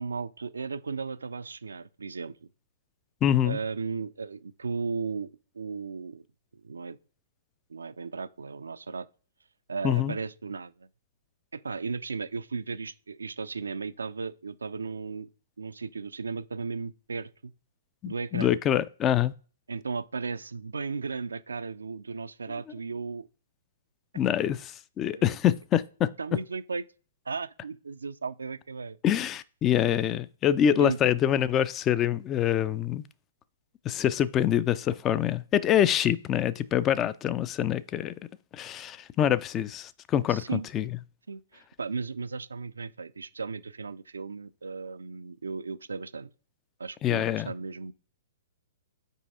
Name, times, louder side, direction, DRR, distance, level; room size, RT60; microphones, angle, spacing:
voice 1, 0.0-2.3 3.4-6.2 6.6-7.0 7.7-9.1 9.7-10.9 11.5-15.3 15.6-17.5 18.1-18.5 19.7-23.3 24.3-24.4 25.1-25.4 26.2-26.8 27.3-29.0 30.8-31.0 40.3-40.7 41.3-46.3 46.8-47.9, right 4 dB, 70° right, 0.3 m, -35 dB
voice 2, 3.2-3.6 9.8-10.1 18.0-19.3 24.1-26.1 29.0-33.0 33.9-38.1 38.5-40.9 47.0-47.5, left 10 dB, 20° left, 0.3 m, -25 dB
5.4 x 4.6 x 4.2 m
figure-of-eight pair, 115°, 0 cm